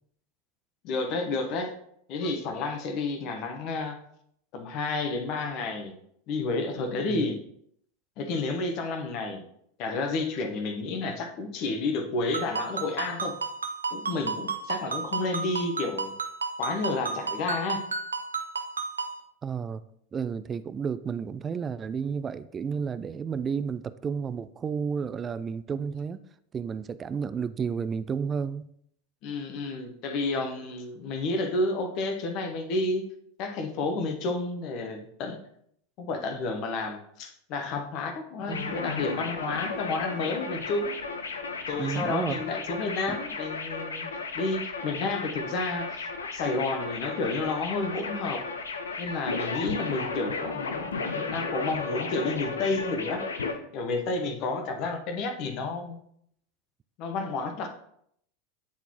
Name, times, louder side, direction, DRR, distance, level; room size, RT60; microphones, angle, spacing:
voice 1, 0.8-1.7 2.1-4.0 4.5-5.9 6.3-7.4 8.2-9.4 9.8-13.4 13.9-16.1 16.6-17.8 29.2-33.1 33.4-35.4 36.0-41.0 41.7-44.1 44.3-48.4 49.0-53.2 53.7-56.0 57.0-57.7, left 3 dB, 50° left, 5 dB, 0.9 m, -31 dB
Ringtone, 12.3-19.2, right 4 dB, 85° right, 0.5 m, -33 dB
voice 2, 19.4-19.8 20.1-26.2 26.5-28.7 38.5-38.7 41.8-42.4, right 6 dB, 25° right, 14 dB, 0.3 m, -31 dB
sound 1, 38.5-53.5, left 4 dB, 80° left, 0.6 m, -34 dB
8.6 x 4.0 x 2.9 m, 0.70 s
figure-of-eight pair, 85°, 0 cm